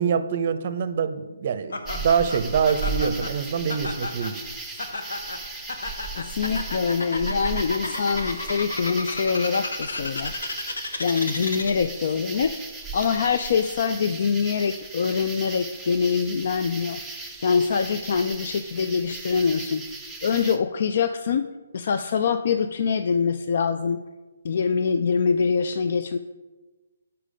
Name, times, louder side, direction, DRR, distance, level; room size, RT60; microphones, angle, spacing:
voice 1, 0.0-4.4, right 6 dB, 40° right, 11 dB, 0.6 m, -25 dB
Laughter, 1.7-12.0, left 2 dB, 90° left, 1.0 m, -34 dB
sound 1, 1.8-20.6, right 3 dB, ahead, 0.6 m, -37 dB
voice 2, 6.2-10.5 11.0-12.6 12.9-17.0 17.4-19.8 20.2-21.5 21.7-24.0 24.4-26.2, left 6 dB, 50° left, 9 dB, 0.4 m, -24 dB
8.3 x 5.7 x 5.0 m, 1.2 s
hypercardioid pair, 160°, 0 cm